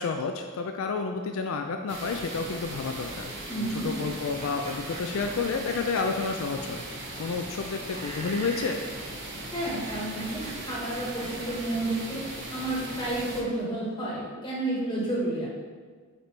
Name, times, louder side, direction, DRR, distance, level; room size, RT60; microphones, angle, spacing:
voice 1, 0.0-3.3 3.8-6.8 7.2-8.8, left 4 dB, 70° left, 4 dB, 0.4 m, -30 dB
sound 1, 1.9-13.4, right 1 dB, 50° right, 1.0 m, -39 dB
voice 2, 3.5-3.9 9.5-12.2 12.5-15.5, right 1 dB, 20° left, -6 dB, 1.4 m, -31 dB
Screech, 4.4-6.3 7.9-8.8 9.4-11.6, right 2 dB, 25° right, 0.6 m, -42 dB
6.6 x 4.5 x 3.3 m, 1.6 s
head